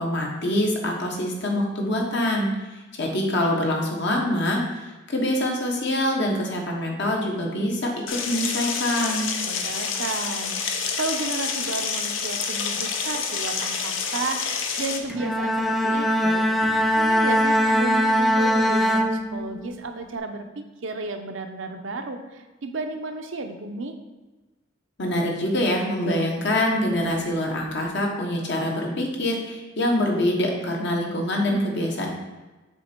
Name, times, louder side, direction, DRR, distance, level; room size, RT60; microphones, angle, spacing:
voice 1, 0.0-2.5 3.0-9.3 25.0-32.1, left 1 dB, 60° left, 0 dB, 1.3 m, -25 dB
sound 1, 8.1-15.0, left 5 dB, 75° left, 0.7 m, -28 dB
voice 2, 9.4-10.6 11.0-23.9, right 3 dB, 70° right, 6 dB, 0.6 m, -33 dB
Bowed string instrument, 15.1-19.8, equal, ahead, 0.3 m, -21 dB
6.9 x 4.0 x 4.5 m, 1.2 s
head